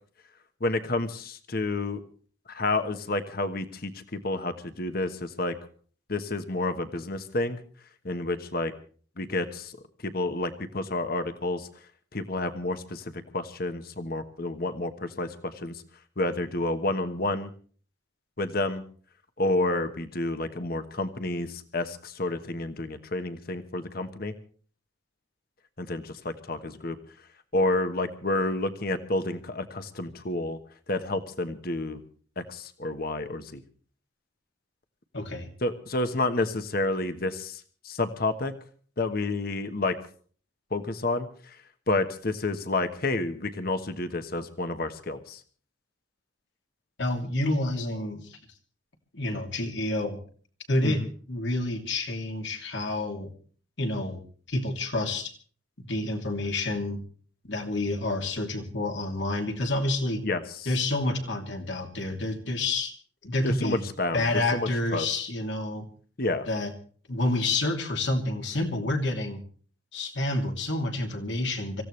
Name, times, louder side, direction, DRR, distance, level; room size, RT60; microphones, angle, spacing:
voice 1, 0.6-2.0 2.5-5.5 6.1-7.6 8.0-8.7 9.2-9.8 10.0-11.7 12.1-15.8 16.2-17.5 18.4-18.8 19.4-24.3 25.8-27.0 27.5-30.6 30.9-32.0 32.4-33.6 35.6-38.5 39.0-40.0 40.7-41.3 41.9-45.4 50.8-51.1 60.2-60.4 63.4-65.1 66.2-66.5, left 2 dB, 50° left, 9 dB, 1.2 m, -29 dB
voice 2, 35.1-35.5 47.0-48.4 49.1-50.2 50.7-51.0 51.3-53.3 53.8-54.2 54.5-55.3 55.9-57.0 57.4-60.2 60.6-62.9 63.2-63.8 64.1-65.8 66.5-66.7 67.1-69.4 69.9-71.8, left 2 dB, 65° left, 3 dB, 2.7 m, -28 dB
25.5 x 15.5 x 3.3 m, 0.43 s
head